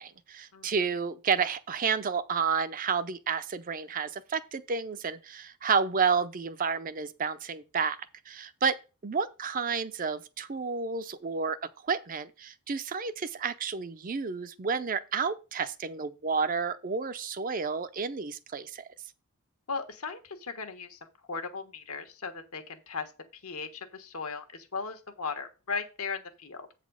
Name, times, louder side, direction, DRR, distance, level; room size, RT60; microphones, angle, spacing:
voice 1, 0.0-8.0 8.3-11.6 11.8-18.9, right 5 dB, 40° right, 0.5 m, -30 dB
voice 2, 19.7-21.0 21.3-26.7, left 5 dB, 75° left, 1.4 m, -37 dB
8.1 x 4.1 x 6.3 m
head